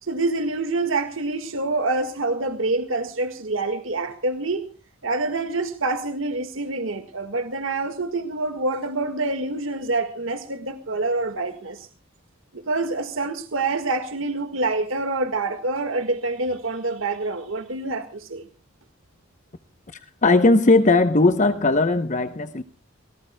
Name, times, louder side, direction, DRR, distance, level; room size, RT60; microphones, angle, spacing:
voice 1, 0.0-4.7 5.0-11.9 12.5-18.4, right 3 dB, 75° right, 8 dB, 1.8 m, -26 dB
voice 2, 19.9-22.6, left 2 dB, 40° left, 10 dB, 0.9 m, -18 dB
27.5 x 19.0 x 2.3 m, 0.38 s
head